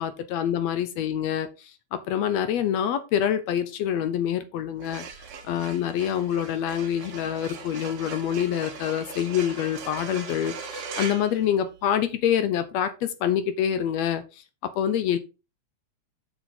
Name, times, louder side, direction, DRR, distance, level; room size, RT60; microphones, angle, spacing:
voice 1, 0.0-5.1 5.4-15.2, left 9 dB, 75° left, 1.7 m, -26 dB
sound 1, 4.7-12.1, right 5 dB, 60° right, 2.0 m, -40 dB
6.5 x 6.2 x 4.1 m
omnidirectional pair, 3.4 m